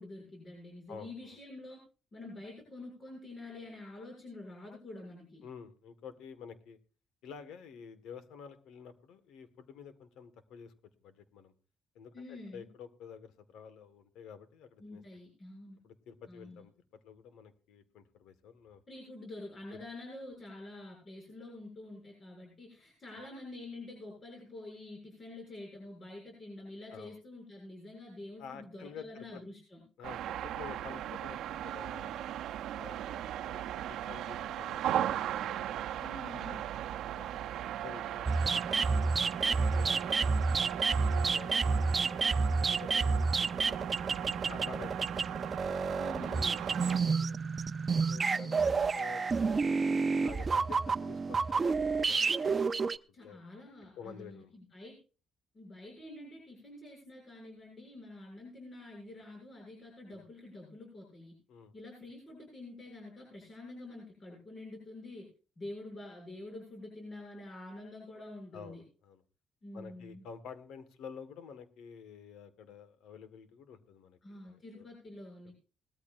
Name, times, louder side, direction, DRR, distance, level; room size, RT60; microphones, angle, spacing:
voice 1, 0.0-1.8 2.1-5.4 12.1-12.7 14.8-15.8 16.3-16.6 18.9-29.8 36.0-36.7 46.0-46.5 48.3-48.9 53.1-55.0 55.5-61.4 61.7-65.3 65.6-68.8 69.6-70.3 74.2-75.5, left 2 dB, 40° left, 0 dB, 7.2 m, -47 dB
voice 2, 5.4-6.8 7.2-10.7 11.0-11.5 11.9-15.0 15.8-16.7 17.0-18.8 19.7-19.8 26.9-27.2 28.4-29.4 30.0-32.3 32.8-36.0 36.4-36.6 37.1-40.2 40.6-41.5 42.1-43.9 44.3-45.0 46.3-47.4 48.0-52.5 53.1-53.4 54.0-54.5 60.1-60.2 61.5-61.7 68.5-69.2 69.7-74.8, left 7 dB, 90° left, 11 dB, 1.6 m, -50 dB
sound 1, 30.0-47.0, right 11 dB, 80° right, 0.7 m, -38 dB
sound 2, 38.3-53.0, right 4 dB, 35° right, 0.6 m, -30 dB
20.0 x 13.5 x 2.5 m, 0.36 s
cardioid pair, 90°, 0 cm